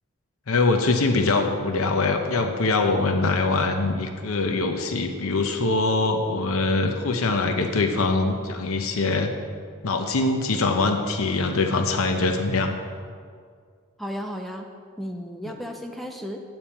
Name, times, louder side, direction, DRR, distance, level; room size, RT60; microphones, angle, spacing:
voice 1, 0.5-9.3 9.8-12.8 15.4-15.5, left 3 dB, 90° left, 5 dB, 0.8 m, -23 dB
voice 2, 14.0-14.7 15.0-16.4, equal, ahead, 3 dB, 0.5 m, -34 dB
10.5 x 8.9 x 4.3 m, 2.1 s
head